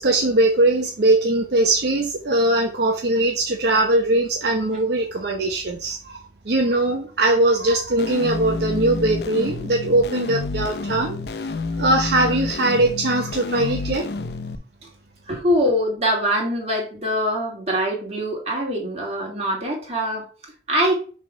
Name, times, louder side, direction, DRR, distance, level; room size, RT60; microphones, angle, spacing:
voice 1, 0.0-6.2 6.5-11.2 11.8-14.0, right 2 dB, 65° right, 2 dB, 0.8 m, -20 dB
sound 1, 8.0-14.6, left 3 dB, 65° left, 0.5 m, -29 dB
voice 2, 15.3-20.3 20.7-21.0, equal, 35° right, -1 dB, 2.4 m, -23 dB
6.4 x 3.5 x 5.2 m, 0.38 s
head